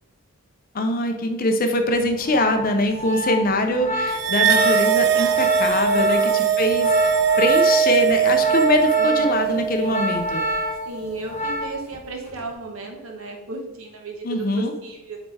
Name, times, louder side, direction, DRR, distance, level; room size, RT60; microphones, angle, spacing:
voice 1, 0.7-10.4 14.2-14.7, left 1 dB, 40° left, 6 dB, 0.6 m, -23 dB
Organ, 2.0-12.0 12.2-12.6, equal, 30° right, 1.8 m, -28 dB
voice 2, 3.1-3.5 5.9-6.6 9.0-10.3 10.8-15.2, right 2 dB, 70° right, 1 dB, 1.1 m, -35 dB
sound 1, 4.2-10.8, right 7 dB, 50° right, 0.4 m, -20 dB
8.3 x 3.5 x 3.3 m, 0.97 s
head